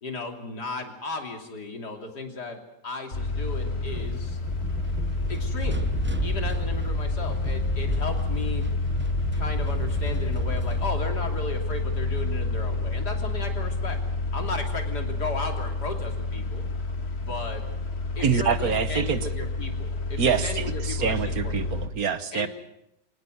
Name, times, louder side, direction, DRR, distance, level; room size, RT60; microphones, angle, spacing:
voice 1, 0.0-4.4 5.3-5.8 6.2-8.7 9.3-14.0 14.3-16.7 17.2-17.6 18.2-21.8 22.3-22.5, left 3 dB, 75° left, 3 dB, 3.7 m, -35 dB
sound 1, 3.1-21.9, left 3 dB, 40° left, 2.3 m, -29 dB
sound 2, 3.9-10.9, right 1 dB, 10° right, 0.7 m, -33 dB
voice 2, 18.2-19.2 20.2-22.5, right 7 dB, 60° right, 12 dB, 1.6 m, -25 dB
26.0 x 18.5 x 7.9 m, 0.85 s
omnidirectional pair, 1.8 m